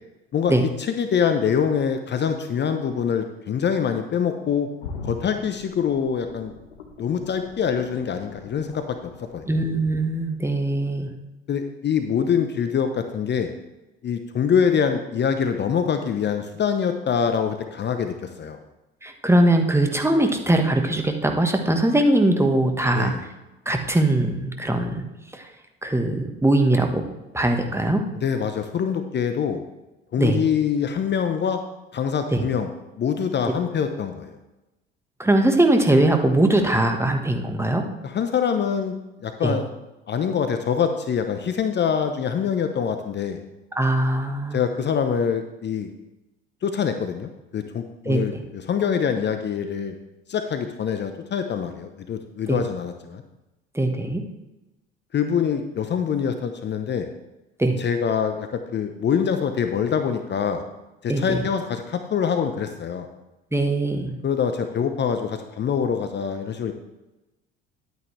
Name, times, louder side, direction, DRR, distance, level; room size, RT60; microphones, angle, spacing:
voice 1, 0.3-4.7 5.0-6.5 7.0-9.6 11.5-13.5 14.0-18.6 22.9-23.2 28.2-29.6 30.1-31.6 31.9-32.7 33.0-34.4 38.0-39.0 39.2-39.6 40.1-43.4 44.5-45.9 46.6-49.9 50.3-53.2 55.1-57.1 57.8-60.6 61.0-63.1 64.2-66.7, left 7 dB, 35° left, 7 dB, 0.8 m, -24 dB
sound 1, 4.8-10.6 11.0-11.1, left 4 dB, 75° left, 1.1 m, -41 dB
voice 2, 9.5-11.1 19.0-23.3 23.6-25.0 25.3-25.5 25.8-27.0 27.3-28.0 30.2-30.5 32.3-32.4 35.2-37.8 39.4-39.6 43.7-44.6 48.0-48.4 52.5-52.6 53.7-54.2 57.6-57.8 61.1-61.4 63.5-64.1, right 1 dB, 10° right, 4 dB, 1.4 m, -21 dB
11.0 x 9.2 x 3.3 m, 1.0 s
figure-of-eight pair, 60°, 30 cm